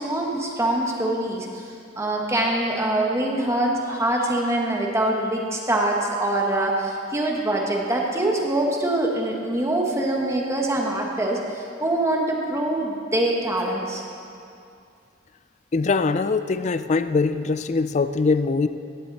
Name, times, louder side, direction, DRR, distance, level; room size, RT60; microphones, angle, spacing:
voice 1, 0.0-1.6 1.9-14.0, right 1 dB, 15° right, -1 dB, 1.5 m, -24 dB
voice 2, 15.7-18.7, left 4 dB, 35° left, 12 dB, 0.4 m, -22 dB
17.5 x 11.0 x 4.2 m, 2.5 s
head